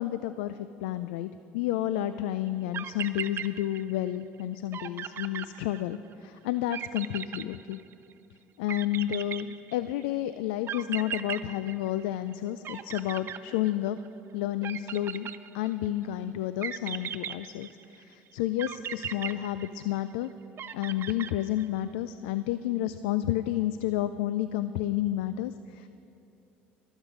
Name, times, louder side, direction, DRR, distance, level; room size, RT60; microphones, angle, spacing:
voice 1, 0.0-7.8 8.6-14.0 14.3-15.3 15.5-17.7 18.0-20.3 20.7-25.9, left 13 dB, 80° left, 13 dB, 0.3 m, -31 dB
sound 1, 2.5-2.6 2.7-4.1 4.4-4.5 4.7-6.1 6.7-8.1 8.7-10.0 10.7-12.3 12.6-14.1 14.6-15.9 16.6-18.0 18.6-20.1 20.6-21.8, right 9 dB, 45° right, 0.6 m, -37 dB
23.0 x 8.1 x 5.1 m, 2.8 s
supercardioid pair, 80°, 6 cm